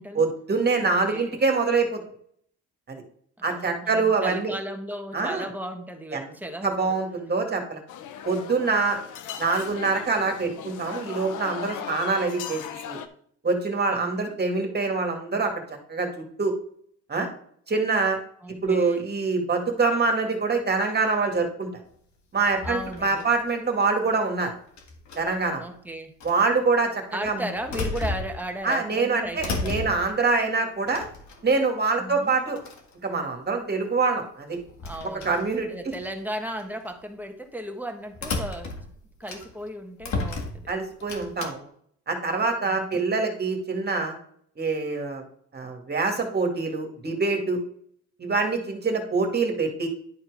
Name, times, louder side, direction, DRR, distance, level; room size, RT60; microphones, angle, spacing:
voice 1, 0.1-2.0 2.9-3.0 3.4-4.5 5.1-5.5 6.1-6.3 6.6-7.8 8.2-9.0 9.4-13.0 13.4-15.5 15.9-16.5 17.1-17.3 17.7-18.2 18.6-21.7 22.3-24.5 25.2-25.7 26.2-27.4 28.6-31.1 31.4-32.6 33.0-34.6 35.2-35.7 40.7-41.7 42.1-44.2 44.6-45.2 45.5-47.6 48.2-49.9, right 4 dB, 35° right, 3 dB, 2.1 m, -25 dB
voice 2, 0.8-1.4 3.4-7.0 13.9-14.3 18.4-19.1 22.6-23.3 25.6-26.1 27.1-29.9 32.0-32.3 34.8-35.3 35.7-38.8 39.2-40.7 42.6-43.0, right 1 dB, 5° right, 5 dB, 1.4 m, -36 dB
sound 1, 7.9-13.1, left 9 dB, 90° left, 0.8 m, -38 dB
sound 2, 22.5-23.4 24.8-25.5 26.2-26.4 27.2-28.7 29.0-30.3 30.9-31.6 32.3-32.4 32.6-32.9 34.5-36.1 36.6-36.9 38.1-39.7 40.0-41.5, left 3 dB, 65° left, 1.7 m, -34 dB
11.0 x 4.4 x 4.9 m, 0.64 s
cardioid pair, 90°, 30 cm